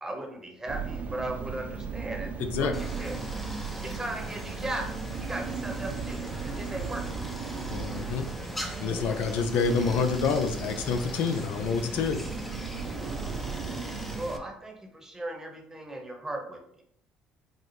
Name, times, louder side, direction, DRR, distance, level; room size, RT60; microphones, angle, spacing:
voice 1, 0.0-3.2 3.8-4.9 5.2-7.1 14.2-16.8, right 1 dB, 15° right, 2 dB, 0.9 m, -37 dB
sound 1, 0.7-14.4, right 5 dB, 50° right, 0.4 m, -36 dB
voice 2, 2.4-2.7 7.7-8.3 8.8-12.3, left 5 dB, 70° left, 7 dB, 0.4 m, -28 dB
Stream, 2.7-14.4, equal, 5° left, 0.6 m, -42 dB
4.1 x 2.0 x 3.1 m, 0.69 s
supercardioid pair, 70°, 3 cm